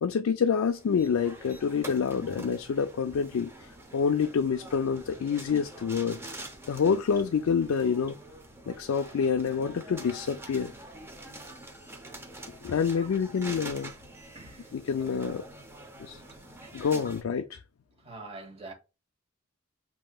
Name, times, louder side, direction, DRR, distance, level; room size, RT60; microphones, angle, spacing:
voice 1, 0.0-6.2 6.7-8.2 8.7-10.7 12.6-13.9 14.7-15.4 16.0-16.2 16.7-17.6, left 6 dB, 70° left, 0.4 m, -27 dB
sound 1, 0.6-17.2, right 1 dB, 10° right, 0.8 m, -46 dB
voice 2, 14.3-14.8 16.2-16.8 18.0-18.7, right 3 dB, 30° right, 1.3 m, -47 dB
7.5 x 2.8 x 2.3 m
head